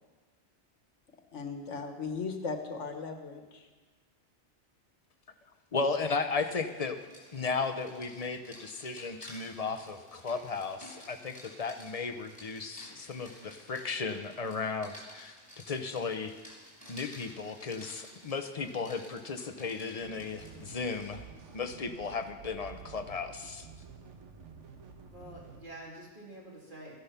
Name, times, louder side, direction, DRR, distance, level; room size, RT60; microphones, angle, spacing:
voice 1, 1.3-3.7, left 4 dB, 90° left, 5 dB, 1.7 m, -37 dB
voice 2, 5.7-7.0 7.3-15.3 15.7-16.3 16.9-21.2 21.5-23.7, left 4 dB, 35° left, 8 dB, 0.8 m, -35 dB
Rain, 6.2-21.2, equal, 5° left, 4.1 m, -53 dB
sound 1, 20.0-25.6, right 5 dB, 85° right, 1.4 m, -50 dB
voice 3, 25.1-26.9, right 1 dB, 45° right, -3 dB, 3.2 m, -47 dB
14.5 x 10.0 x 5.8 m, 1.3 s
omnidirectional pair, 1.2 m